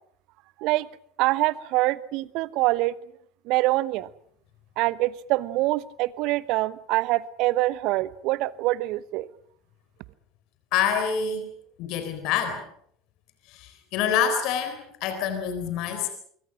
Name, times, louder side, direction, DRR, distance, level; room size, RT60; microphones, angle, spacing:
voice 1, 1.2-2.9 3.5-4.1 4.8-9.3, right 18 dB, 55° right, 19 dB, 1.0 m, -25 dB
voice 2, 10.7-11.5 11.8-12.6 13.5-16.1, left 7 dB, 55° left, 8 dB, 4.0 m, -26 dB
26.0 x 24.0 x 6.2 m, 0.64 s
figure-of-eight pair, 70°, 0 cm